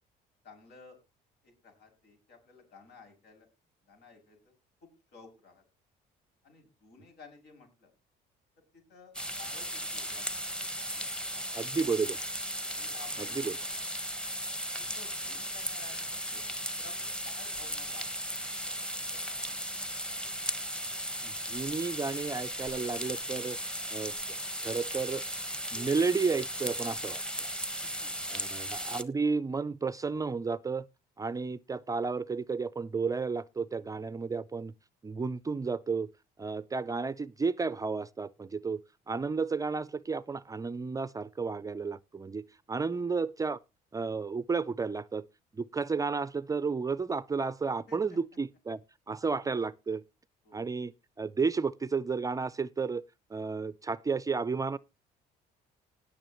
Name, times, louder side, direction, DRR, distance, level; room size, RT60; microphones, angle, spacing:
voice 1, 0.4-1.0 1.4-3.5 3.8-4.5 4.8-5.6 6.4-7.9 8.6-10.3 10.9-12.0 12.6-13.8 14.8-16.4 16.8-18.4 18.6-19.9 27.8-28.6 42.8-43.1 47.9-48.2 50.4-50.7, left 4 dB, 75° left, 6.7 m, -55 dB
sound 1, 9.1-29.0, equal, 5° left, 1.2 m, -36 dB
voice 2, 11.5-12.2 13.4-13.5 21.2-23.6 23.9-24.1 24.6-25.2 25.7-27.5 28.5-30.9 31.2-34.7 35.0-36.1 36.4-38.8 39.1-42.4 42.7-43.6 43.9-45.2 45.5-48.8 49.1-50.0 50.5-50.9 51.2-53.0 53.3-54.8, right 4 dB, 20° right, 0.5 m, -32 dB
19.5 x 7.0 x 3.0 m
cardioid pair, 110°, 17 cm